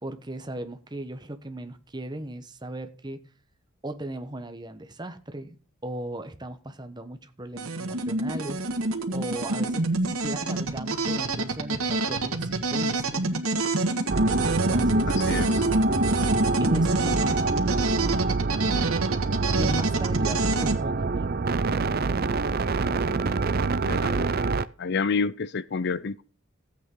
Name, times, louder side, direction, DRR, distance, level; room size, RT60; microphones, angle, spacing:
voice 1, 0.0-3.2 3.8-5.6 5.8-8.6 9.1-13.2 14.5-15.1 16.6-17.7 19.5-21.4, right 1 dB, 20° right, 1.1 m, -37 dB
sound 1, 7.5-20.8, right 2 dB, 75° right, 1.9 m, -27 dB
sound 2, 14.1-24.7, right 3 dB, 45° right, 0.5 m, -26 dB
voice 2, 15.2-15.7 23.6-24.5 24.8-26.2, left 5 dB, 50° left, 0.5 m, -29 dB
15.5 x 8.3 x 3.8 m
head